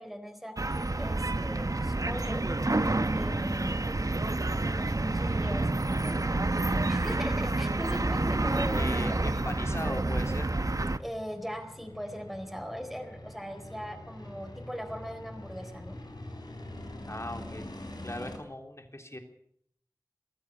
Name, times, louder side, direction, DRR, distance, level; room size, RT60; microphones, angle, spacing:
voice 1, 0.0-2.4 3.1-3.9 4.8-6.2 6.9-9.2 11.0-16.0, equal, ahead, 5 dB, 4.1 m, -40 dB
sound 1, 0.6-11.0, right 2 dB, 55° right, 1.0 m, -28 dB
voice 2, 8.8-10.5 17.1-17.7 18.0-19.2, left 1 dB, 40° left, 5 dB, 3.5 m, -38 dB
sound 2, 10.1-18.4, left 1 dB, 80° left, 4.5 m, -47 dB
22.0 x 14.5 x 8.5 m, 0.69 s
wide cardioid pair, 45°, 7 cm